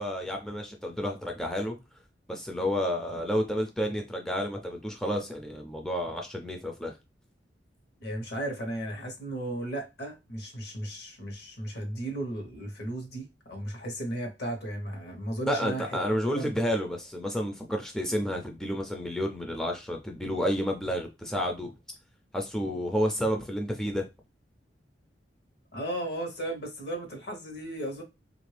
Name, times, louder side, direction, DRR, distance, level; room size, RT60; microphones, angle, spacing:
voice 1, 0.0-1.8 2.3-7.0 15.5-21.7 22.3-24.1, equal, 5° left, 0.4 m, -30 dB
voice 2, 8.0-16.0 16.4-16.5 25.7-28.0, right 1 dB, 65° left, 1.1 m, -35 dB
3.1 x 2.5 x 3.3 m
head